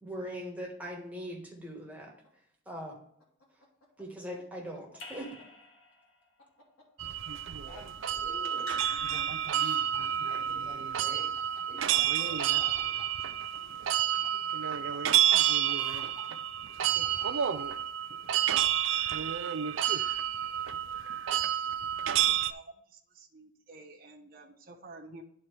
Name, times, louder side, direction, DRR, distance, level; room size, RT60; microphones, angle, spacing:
voice 1, 0.0-2.1 2.7-3.0 4.0-5.4, equal, 5° right, -1 dB, 1.4 m, -40 dB
sound 1, 2.2-2.3 3.2-5.4 6.4-6.8 8.7-10.0 10.7-13.0 14.0-14.3 14.9-15.0 15.2-16.2 16.8-17.6, left 2 dB, 90° left, 2.5 m, -52 dB
Raindrop / Drip, 5.0-6.2 8.6-9.9, left 2 dB, 65° left, 1.7 m, -48 dB
sound 2, 7.0-22.5, right 10 dB, 60° right, 0.4 m, -29 dB
voice 2, 7.7-8.8 10.3-11.3 11.7-12.8, left 1 dB, 25° left, -7 dB, 2.7 m, -49 dB
voice 3, 22.4-25.2, right 3 dB, 40° right, -2 dB, 1.1 m, -51 dB
11.5 x 4.2 x 3.3 m, 0.69 s
head